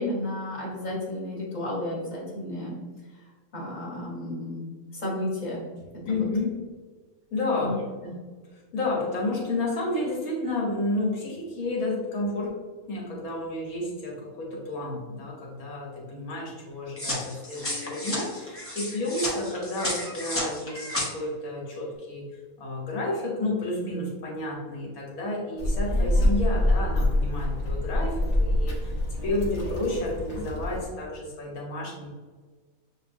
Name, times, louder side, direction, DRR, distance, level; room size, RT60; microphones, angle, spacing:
voice 1, 0.0-2.8 3.5-5.7 6.0-6.3 7.6-7.8 8.0-8.1, left 1 dB, 30° left, -5 dB, 1.4 m, -32 dB
voice 2, 6.1-6.6 7.3-7.9 8.7-12.5 12.8-22.3 22.6-32.1, left 2 dB, 75° left, -3 dB, 1.6 m, -31 dB
sound 1, 17.0-21.1, left 1 dB, 15° left, 0.5 m, -32 dB
Child speech kid speaking, 25.6-30.9, left 1 dB, 55° left, 1.1 m, -25 dB
6.4 x 2.6 x 2.5 m, 1.4 s
omnidirectional pair, 1.6 m